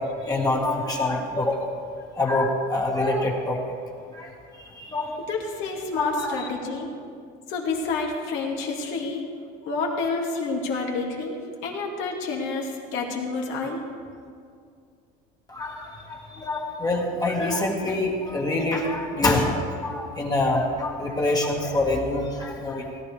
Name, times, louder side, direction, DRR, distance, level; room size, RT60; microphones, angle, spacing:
voice 1, 0.0-1.7 2.2-3.6 4.1-4.3 4.6-5.2 6.0-6.5 15.5-23.0, left 2 dB, 20° left, -1 dB, 1.7 m, -26 dB
voice 2, 5.3-6.9 7.5-9.2 9.6-11.4 11.6-13.8, left 4 dB, 70° left, -1 dB, 2.3 m, -29 dB
17.5 x 11.5 x 3.4 m, 2.3 s
supercardioid pair, 110°, 20 cm